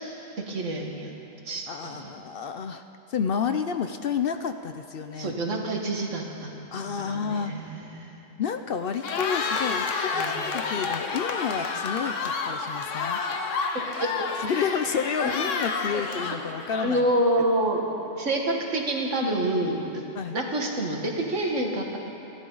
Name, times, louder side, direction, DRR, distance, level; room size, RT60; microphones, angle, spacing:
voice 1, 0.5-1.1 1.5-2.1 5.2-8.2 10.1-10.5 14.0-14.1 15.2-15.3 16.8-20.0 20.3-22.0, right 1 dB, 75° right, 1 dB, 2.0 m, -28 dB
voice 2, 1.7-2.8 3.1-5.3 6.7-7.5 8.4-13.2 14.4-17.1 20.1-20.4, left 7 dB, 60° left, 8 dB, 0.7 m, -30 dB
Cheering, 8.9-17.2, left 4 dB, 90° left, 1.3 m, -29 dB
29.5 x 12.0 x 3.9 m, 2.9 s
omnidirectional pair, 1.3 m